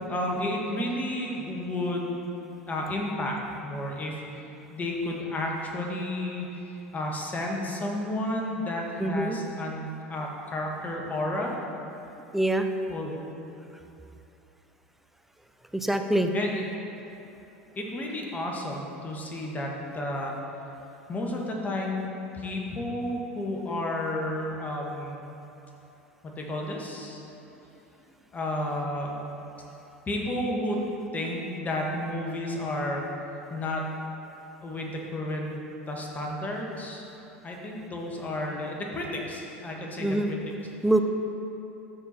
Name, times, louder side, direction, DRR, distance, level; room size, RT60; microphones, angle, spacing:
voice 1, 0.1-2.2 2.7-11.5 12.9-13.3 16.3-16.7 17.8-20.4 21.1-22.1 22.3-25.2 26.2-27.2 28.3-29.2 30.1-30.8 31.1-33.9 34.6-35.6 35.9-37.1 37.4-40.4, left 1 dB, 25° left, -1 dB, 1.7 m, -32 dB
voice 2, 9.0-9.4 12.3-12.7 15.7-16.3 40.0-40.4 40.8-41.0, right 1 dB, 5° right, 6 dB, 0.6 m, -24 dB
13.5 x 4.7 x 4.4 m, 2.9 s
hypercardioid pair, 85°, 7 cm